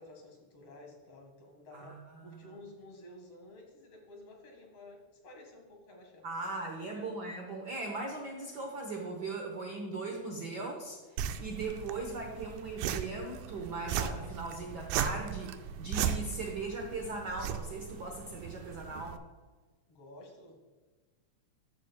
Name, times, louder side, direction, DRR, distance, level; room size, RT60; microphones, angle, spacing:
voice 1, 0.0-6.3 6.9-7.1 19.9-20.6, left 1 dB, 55° left, 1 dB, 2.5 m, -52 dB
voice 2, 1.7-2.5 6.2-19.2, right 3 dB, 75° right, 1 dB, 0.9 m, -39 dB
sound 1, 11.2-19.2, right 9 dB, 90° right, 2.1 m, -37 dB
13.0 x 7.3 x 2.2 m, 1.3 s
omnidirectional pair, 3.4 m